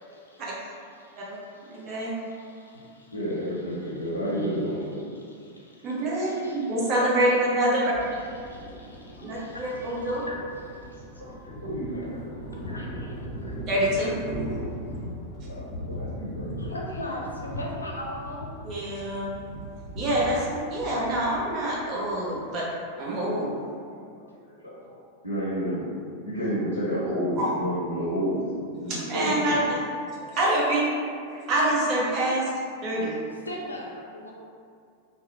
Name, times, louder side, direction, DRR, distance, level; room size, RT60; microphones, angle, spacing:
voice 1, 0.0-3.2 3.6-4.6 4.9-6.8 8.1-11.0 11.4-11.6 11.9-13.6 16.6-18.6 33.0-34.3, left 1 dB, 80° left, -2 dB, 0.4 m, -41 dB
voice 2, 1.6-2.1 5.8-7.9 9.2-10.2 13.7-14.1 18.6-19.3 19.9-22.6 23.0-23.5 27.4-27.5 28.9-29.8 30.2-30.9 31.3-32.5 32.8-33.1, right 1 dB, 35° right, -5 dB, 0.7 m, -26 dB
voice 3, 3.1-5.0 9.2-9.3 11.6-12.1 15.4-16.7 25.2-25.9 26.2-29.6, equal, 80° right, -13 dB, 0.9 m, -30 dB
Thunder, 7.9-22.7, equal, 5° left, 0.8 m, -38 dB
2.8 x 2.0 x 2.6 m, 2.4 s
figure-of-eight pair, 90°, 0 cm